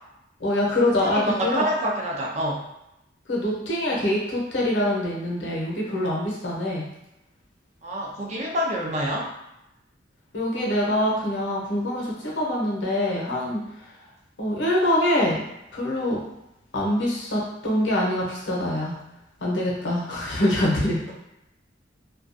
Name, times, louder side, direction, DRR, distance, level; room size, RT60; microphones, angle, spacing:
voice 1, 0.4-1.7 3.3-6.9 10.3-13.6 14.4-15.4 15.7-16.2 16.7-18.9 19.4-21.1, left 1 dB, 75° left, -4 dB, 0.7 m, -24 dB
voice 2, 1.0-2.6 3.9-4.0 7.8-9.3, equal, 40° right, -2 dB, 0.5 m, -27 dB
2.3 x 2.2 x 2.6 m, 0.88 s
head